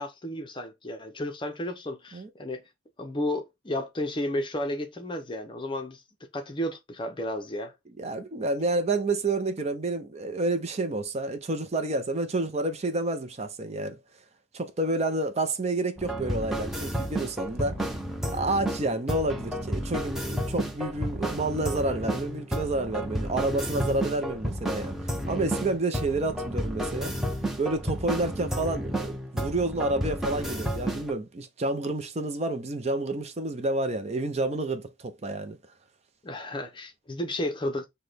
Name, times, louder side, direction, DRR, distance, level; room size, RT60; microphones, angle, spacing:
voice 1, 0.0-2.6 3.0-6.0 6.3-7.7 36.2-37.9, left 1 dB, 25° left, 0.6 m, -32 dB
voice 2, 8.0-14.0 14.5-18.0 18.2-27.1 27.6-35.6, right 2 dB, 35° right, 0.5 m, -29 dB
sound 1, 16.0-31.1, right 1 dB, ahead, 0.8 m, -31 dB
5.9 x 2.2 x 3.3 m
head